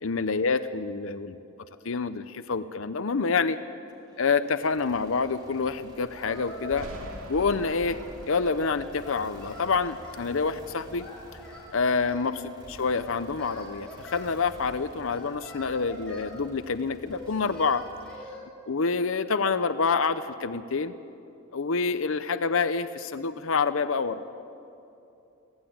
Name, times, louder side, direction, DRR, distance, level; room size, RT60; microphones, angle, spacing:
voice 1, 0.0-1.4 1.8-3.6 4.2-6.9 7.3-8.0 8.3-11.0 11.7-12.4 12.7-17.8 18.7-20.9 21.5-24.2, left 4 dB, 65° left, 12 dB, 0.7 m, -27 dB
sound 1, 3.9-18.2, equal, 20° right, 2.9 m, -51 dB
Singing, 6.1-7.0 7.3-8.6 9.0-10.3 11.0-12.3 13.0-14.2 15.1-16.3 17.1-18.4, left 1 dB, 5° left, 5.8 m, -44 dB
Thunder, 6.7-12.1 12.5-13.9 14.2-15.9, right 1 dB, 70° right, 2.4 m, -46 dB
23.0 x 16.5 x 8.7 m, 2.8 s
head